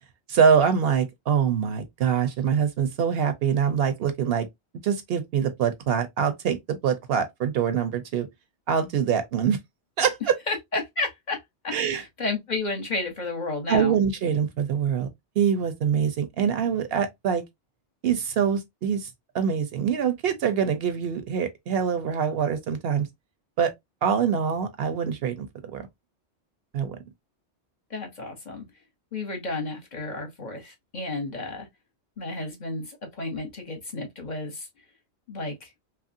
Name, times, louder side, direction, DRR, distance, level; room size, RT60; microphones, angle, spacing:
voice 1, 0.3-4.5 4.8-8.3 8.7-9.6 10.0-10.4 11.7-12.0 13.7-15.1 15.4-17.4 18.0-19.1 19.3-23.1 23.6-23.7 24.0-25.5 25.7-25.8 26.7-27.0, right 7 dB, 65° right, 0.7 m, -24 dB
voice 2, 10.5-14.0 27.9-28.7 29.1-31.7 32.2-34.7 35.3-35.7, left 3 dB, 45° left, 0.8 m, -32 dB
2.9 x 2.4 x 2.6 m
omnidirectional pair, 1.2 m